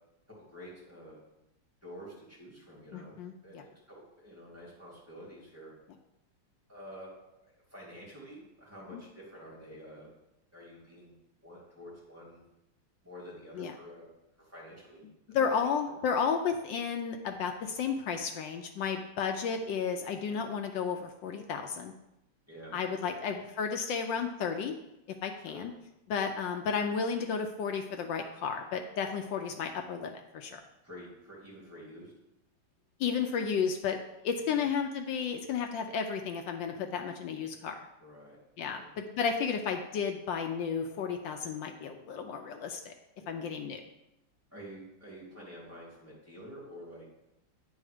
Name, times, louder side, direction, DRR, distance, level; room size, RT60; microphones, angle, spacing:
voice 1, 0.5-1.2 1.8-3.2 3.4-5.7 6.7-7.1 7.4-10.1 10.5-11.1 11.4-12.4 13.0-14.1 14.4-15.5 15.9-16.0 22.5-23.3 25.4-25.7 30.8-32.1 34.4-34.7 38.0-38.4 38.6-38.9 43.2-43.4 44.5-47.1, equal, 5° right, -5 dB, 2.1 m, -49 dB
voice 2, 2.9-3.6 8.9-9.0 13.5-13.7 15.3-21.9 22.7-24.7 25.2-25.7 26.1-30.6 33.0-34.0 34.2-37.8 38.6-42.9 43.3-43.8, left 6 dB, 75° left, 5 dB, 1.1 m, -33 dB
8.6 x 3.5 x 4.9 m, 0.88 s
omnidirectional pair, 2.4 m